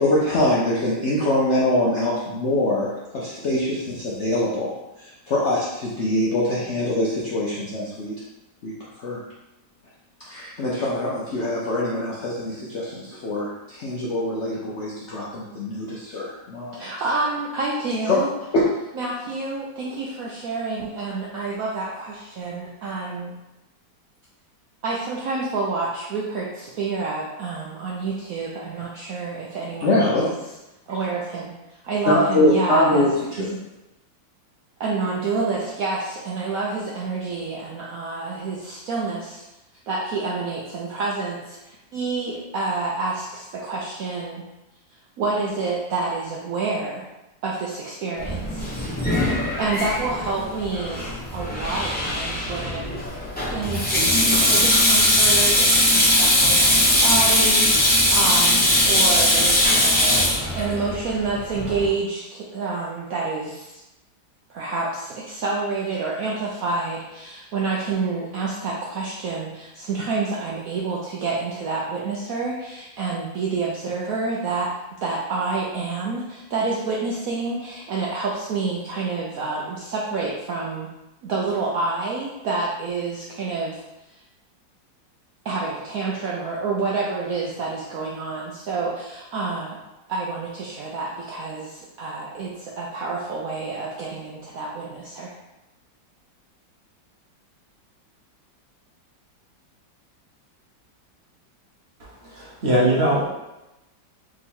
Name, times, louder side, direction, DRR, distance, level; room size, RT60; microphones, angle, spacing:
voice 1, 0.0-4.7 5.0-8.1 8.6-8.7 9.0-9.2 10.3-16.8 18.1-18.2 18.5-18.6 29.8-30.3 32.1-33.5, left 1 dB, 65° left, -6 dB, 0.7 m, -23 dB
voice 2, 16.7-18.3 18.9-23.3 24.8-30.4 30.9-31.5 31.8-33.5 34.8-39.5 39.9-44.4 45.2-47.1 47.4-48.7 49.2-53.0 53.5-63.8 64.5-74.7 75.0-80.9 81.2-83.8 84.1-84.2 85.4-89.8 90.1-95.3, right 3 dB, 70° right, -4 dB, 0.8 m, -28 dB
Sink (filling or washing), 48.2-61.9, left 1 dB, 10° left, 0.5 m, -20 dB
voice 3, 102.3-103.2, right 1 dB, 40° right, -6 dB, 1.0 m, -20 dB
3.7 x 2.9 x 4.3 m, 0.97 s
omnidirectional pair, 2.0 m